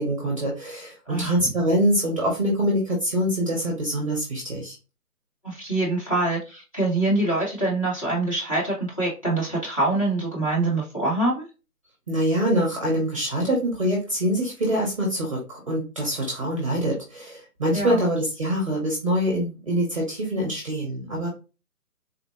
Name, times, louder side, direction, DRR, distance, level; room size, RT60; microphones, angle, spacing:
voice 1, 0.0-4.7 12.1-21.3, equal, 20° right, -1 dB, 0.7 m, -24 dB
voice 2, 5.4-11.5 17.7-18.0, right 2 dB, 20° left, -5 dB, 0.8 m, -25 dB
3.7 x 2.1 x 2.3 m, 0.30 s
figure-of-eight pair, 155°, 47 cm